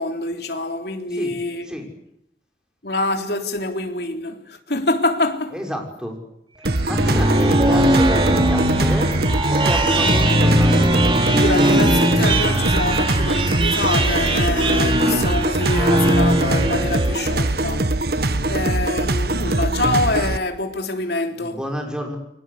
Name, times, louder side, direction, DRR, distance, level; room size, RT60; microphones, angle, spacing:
voice 1, 0.0-1.7 2.8-5.5 11.3-17.9 18.5-21.6, left 2 dB, 60° left, 3.5 m, -25 dB
voice 2, 5.5-6.1 6.9-9.1 9.5-10.9 21.3-22.2, equal, 5° right, 6.1 m, -30 dB
sound 1, 6.6-17.5, right 1 dB, 30° right, 3.9 m, -20 dB
sound 2, 6.6-20.4, right 2 dB, 60° right, 1.4 m, -22 dB
29.5 x 23.0 x 8.3 m
head